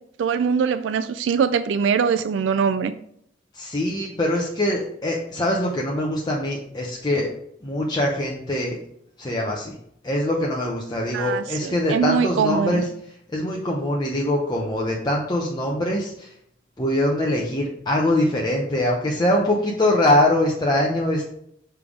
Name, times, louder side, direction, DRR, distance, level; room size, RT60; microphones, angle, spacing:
voice 1, 0.2-2.9 11.1-12.8, right 6 dB, 85° right, 11 dB, 0.3 m, -22 dB
voice 2, 3.5-7.3 7.6-8.8 9.2-9.8 10.0-12.8 13.3-16.3 16.8-21.3, left 1 dB, 25° left, -2 dB, 0.7 m, -23 dB
7.1 x 3.4 x 4.9 m, 0.72 s
head